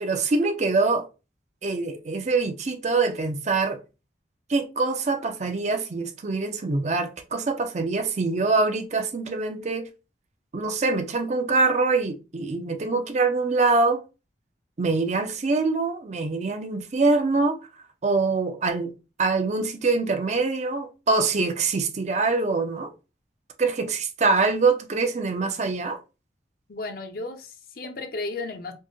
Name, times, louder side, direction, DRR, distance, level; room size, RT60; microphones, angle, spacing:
voice 1, 0.0-1.1 1.6-3.8 4.5-9.9 10.5-14.0 14.8-17.6 18.0-18.9 19.2-22.9 23.6-26.0, right 3 dB, 40° right, 0.5 m, -24 dB
voice 2, 26.7-28.7, left 3 dB, 55° left, 0.6 m, -34 dB
4.4 x 2.1 x 3.0 m
head